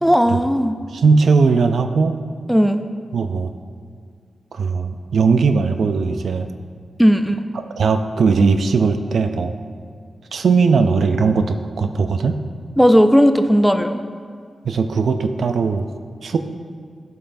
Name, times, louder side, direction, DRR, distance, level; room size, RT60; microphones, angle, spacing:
voice 1, 0.0-0.8 2.5-2.8 7.0-7.4 12.8-14.1, equal, ahead, 8 dB, 0.4 m, -15 dB
voice 2, 0.9-2.2 3.1-3.5 4.5-6.5 7.8-9.5 10.3-12.4 14.6-15.9 16.2-16.4, right 4 dB, 75° right, 7 dB, 0.4 m, -18 dB
11.0 x 5.5 x 2.6 m, 2.1 s
cardioid pair, 75°, 0 cm